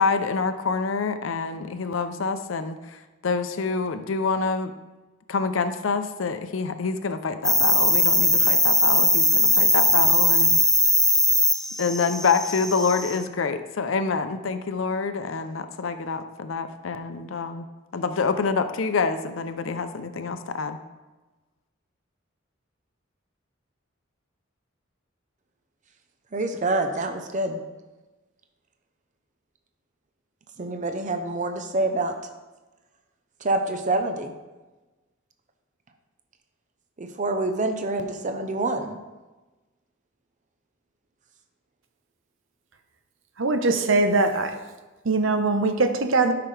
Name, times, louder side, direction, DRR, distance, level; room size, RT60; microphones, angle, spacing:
voice 1, 0.0-4.7 5.3-10.5 11.8-17.7 17.9-20.8, left 4 dB, 75° left, 10 dB, 0.6 m, -26 dB
sound 1, 7.4-13.2, left 1 dB, ahead, 0.5 m, -20 dB
voice 2, 26.3-27.6 30.6-32.1 33.4-34.3 37.0-39.0, right 2 dB, 40° right, 6 dB, 0.7 m, -26 dB
voice 3, 43.4-44.6 45.0-46.3, right 3 dB, 70° right, 7 dB, 0.8 m, -21 dB
12.5 x 5.9 x 3.3 m, 1.2 s
head